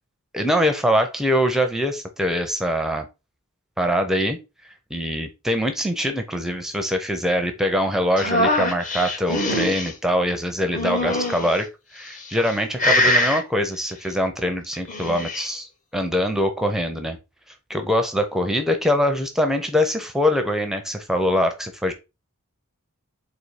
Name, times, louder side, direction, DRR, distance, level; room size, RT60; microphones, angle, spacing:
voice 1, 0.3-3.1 3.8-4.4 4.9-17.2 17.7-21.9, equal, ahead, 5 dB, 0.5 m, -23 dB
sound 1, 8.2-9.9 10.7-11.6 12.2-12.5 12.8-13.4 14.7-15.5, left 1 dB, 35° left, 0.8 m, -22 dB
4.1 x 2.7 x 4.6 m, 0.26 s
head